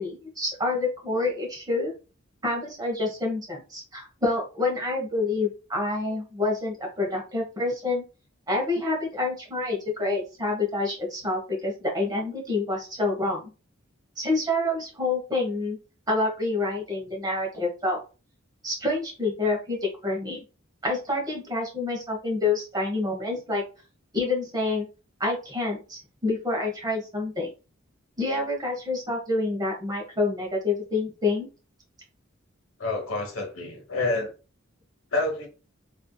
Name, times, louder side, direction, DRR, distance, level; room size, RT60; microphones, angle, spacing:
voice 1, 0.0-1.9 2.4-8.0 8.5-13.5 14.2-15.8 16.1-18.0 18.6-20.4 20.8-23.6 24.1-24.9 25.2-27.5 28.2-31.5, left 2 dB, 20° right, 1.0 m, -27 dB
voice 2, 32.8-34.3 35.1-35.5, left 2 dB, 85° left, 1.1 m, -28 dB
3.3 x 2.6 x 2.2 m
head